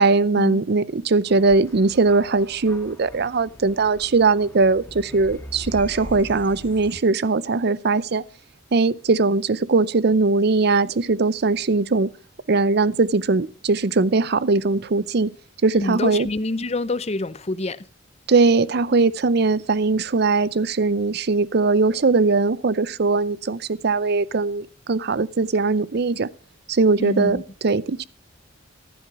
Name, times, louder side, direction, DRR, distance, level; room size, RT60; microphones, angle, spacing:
voice 1, 0.0-8.2 8.7-12.1 12.5-15.3 15.6-16.3 18.3-26.3 26.7-28.0, right 3 dB, 55° right, 0.6 m, -20 dB
sound 1, 1.3-7.0, equal, 10° left, 1.9 m, -41 dB
voice 2, 15.8-17.9 18.9-19.1 27.0-27.4, left 2 dB, 35° left, 0.7 m, -27 dB
14.5 x 12.0 x 4.7 m
head